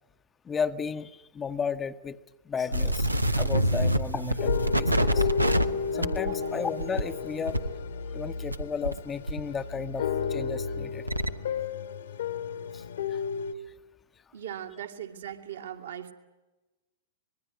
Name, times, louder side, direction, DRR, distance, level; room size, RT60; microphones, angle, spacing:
voice 1, 0.5-2.2 2.5-3.1 3.4-5.3 5.9-7.6 8.1-11.0 12.7-12.8 13.1-13.2, left 6 dB, 20° left, 10 dB, 0.9 m, -34 dB
sound 1, 2.7-9.0 9.3-11.3, equal, 90° right, 1.1 m, -28 dB
sound 2, 4.4-13.5, left 7 dB, 65° left, 1.6 m, -33 dB
voice 2, 6.2-6.5 14.3-16.1, right 10 dB, 65° right, 3 dB, 2.4 m, -39 dB
25.5 x 22.0 x 9.7 m, 1.1 s
figure-of-eight pair, 100°, 0 cm